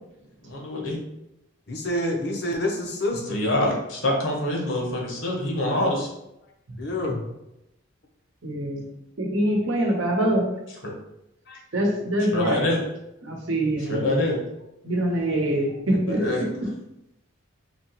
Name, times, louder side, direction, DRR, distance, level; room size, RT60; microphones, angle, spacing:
voice 1, 0.4-1.0 3.3-6.1 12.3-12.8 13.9-14.4 16.1-16.4, left 1 dB, 70° left, -1 dB, 1.0 m, -25 dB
voice 2, 1.7-3.4 6.8-7.2 11.5-11.6, left 1 dB, 50° left, 1 dB, 0.6 m, -27 dB
voice 3, 8.4-8.8 9.2-10.6 11.7-12.7 13.2-14.2 14.8-16.2, right 1 dB, 70° right, 1 dB, 0.8 m, -24 dB
4.4 x 2.8 x 2.9 m, 0.86 s
head